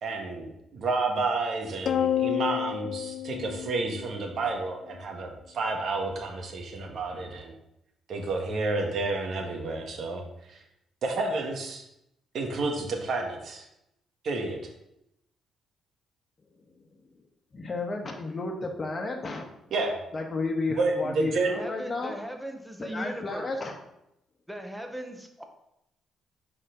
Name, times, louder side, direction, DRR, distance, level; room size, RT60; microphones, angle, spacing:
voice 1, 0.0-7.5 8.1-10.2 10.5-10.6 11.0-11.8 12.3-13.7 14.2-14.6 19.7-19.9 20.7-21.6, right 3 dB, 60° right, 2 dB, 1.5 m, -30 dB
sound 1, 1.9-4.5, left 10 dB, 60° left, 0.3 m, -29 dB
voice 2, 17.5-19.5 20.1-22.1 22.8-23.7, left 3 dB, 35° left, 2 dB, 1.3 m, -32 dB
voice 3, 21.5-23.6 24.5-25.4, right 1 dB, 5° right, 4 dB, 1.0 m, -38 dB
5.5 x 4.3 x 5.0 m, 0.83 s
cardioid pair, 90°, 0 cm